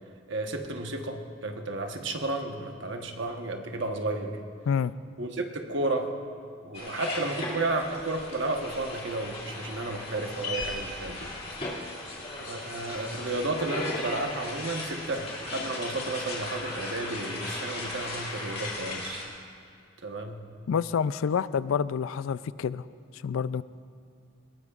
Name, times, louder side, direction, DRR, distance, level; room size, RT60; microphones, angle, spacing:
voice 1, 0.3-4.4 5.2-6.1 6.6-11.3 12.4-19.3 20.0-20.4, right 2 dB, 65° right, 4 dB, 1.2 m, -32 dB
sound 1, 6.7-19.2, left 2 dB, 30° left, 2.2 m, -36 dB
voice 2, 20.7-22.8 23.2-23.6, left 7 dB, 80° left, 17 dB, 0.3 m, -28 dB
21.0 x 18.5 x 2.5 m, 2.4 s
head